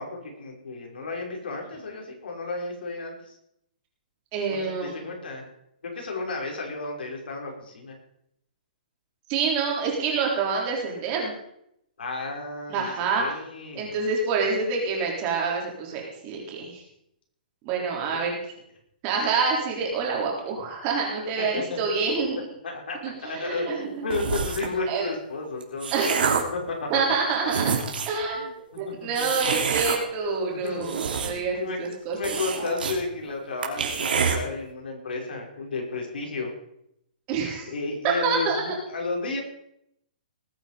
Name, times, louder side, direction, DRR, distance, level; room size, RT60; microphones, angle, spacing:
voice 1, 0.0-3.4 4.5-5.4 5.8-8.0 12.0-14.0 17.9-18.3 21.4-21.8 22.6-26.1 26.5-26.9 28.3-28.5 28.9-29.3 30.5-30.9 31.2-31.8 32.1-36.5 37.7-39.4, left 3 dB, 85° left, 1 dB, 5.5 m, -33 dB
voice 2, 4.3-4.9 9.3-11.3 12.7-13.2 13.8-16.8 17.6-18.4 19.0-22.5 23.0-24.1 24.9-25.1 25.9-26.4 26.9-27.7 28.1-28.4 28.8-32.4 37.3-37.7 38.2-38.6, right 5 dB, 25° right, -1 dB, 3.6 m, -27 dB
sound 1, 24.1-24.8 25.4-26.6 27.1-27.2 27.5-28.2 29.1-30.0 30.7-31.6 31.8-31.9 32.2-33.0 33.3-33.4 33.6-34.4, right 6 dB, 80° right, 3.2 m, -27 dB
19.5 x 9.0 x 5.1 m, 0.76 s
hypercardioid pair, 170°, 5 cm